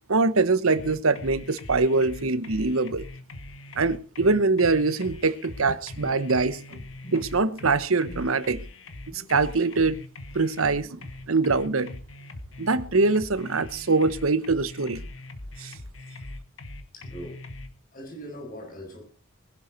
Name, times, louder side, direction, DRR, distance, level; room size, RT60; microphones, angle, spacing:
voice 1, 0.1-3.1 3.8-6.6 7.1-8.6 9.1-10.0 10.3-11.9 12.6-15.0 15.6-15.7, right 3 dB, 80° right, 1.0 m, -23 dB
sound 1, 0.7-17.7, left 2 dB, 70° left, 1.9 m, -41 dB
voice 2, 7.0-7.4 8.1-8.2 9.1-9.3 16.9-17.4 17.9-19.0, equal, 40° left, 7.4 m, -41 dB
20.5 x 12.0 x 4.5 m
head